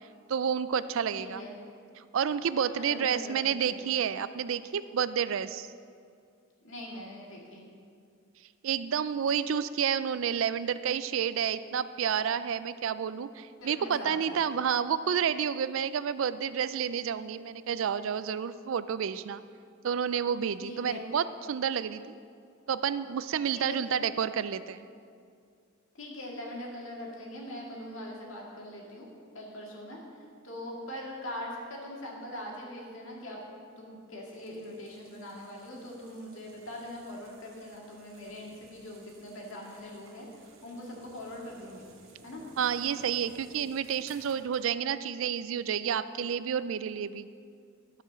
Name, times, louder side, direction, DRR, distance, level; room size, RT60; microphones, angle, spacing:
voice 1, 0.3-1.4 2.1-5.7 8.6-19.4 19.8-22.2 22.7-24.8 42.6-47.3, right 8 dB, 70° right, 14 dB, 0.4 m, -30 dB
voice 2, 1.2-1.6 2.6-3.4 3.7-3.8 6.6-7.6 13.6-14.6 20.6-21.1 23.5-24.1 25.9-29.1 29.3-30.0 30.4-33.4 33.8-41.9 42.2-42.4, left 1 dB, 70° left, -2 dB, 2.1 m, -42 dB
sound 1, 34.3-44.6, right 3 dB, 85° right, 1.5 m, -57 dB
12.0 x 5.0 x 6.7 m, 2.3 s
head